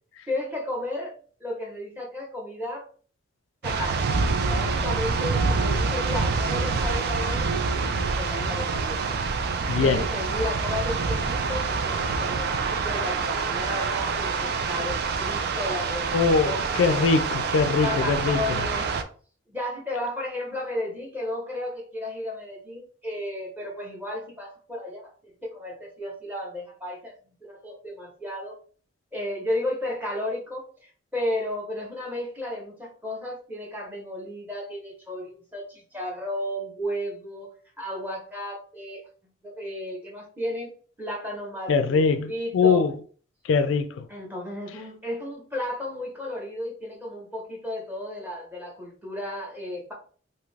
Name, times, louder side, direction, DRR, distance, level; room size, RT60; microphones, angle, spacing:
voice 1, 0.3-1.1 1.4-2.9 3.6-4.1 4.4-9.0 9.7-17.0 17.8-18.9 19.5-27.1 27.4-28.5 29.1-37.5 37.8-39.0 39.4-40.7 41.0-42.8 44.1-49.9, left 1 dB, 10° right, 0.8 m, -33 dB
sound 1, 3.6-19.0, right 4 dB, 55° right, 0.4 m, -26 dB
voice 2, 9.7-10.0 16.1-18.4 41.7-42.9 43.5-44.1, left 5 dB, 75° left, 0.3 m, -22 dB
2.7 x 2.4 x 3.2 m
head